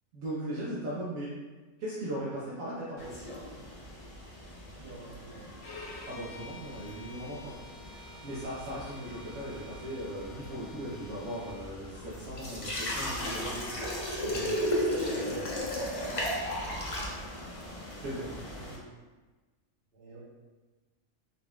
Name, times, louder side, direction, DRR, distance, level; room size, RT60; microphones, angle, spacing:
voice 1, 0.1-1.3 1.8-3.1 6.0-7.5 8.2-13.7 14.2-14.5 15.1-15.5 18.0-18.4, right 1 dB, 75° right, -8 dB, 1.2 m, -38 dB
sound 1, 3.0-18.8, equal, 45° left, 0.4 m, -37 dB
voice 2, 4.7-5.6 18.6-18.8 19.9-20.2, right 3 dB, 40° right, -10 dB, 1.7 m, -49 dB
Bowed string instrument, 5.6-11.6, left 2 dB, 85° left, 1.2 m, -49 dB
3.9 x 3.8 x 2.3 m, 1.3 s
omnidirectional pair, 1.4 m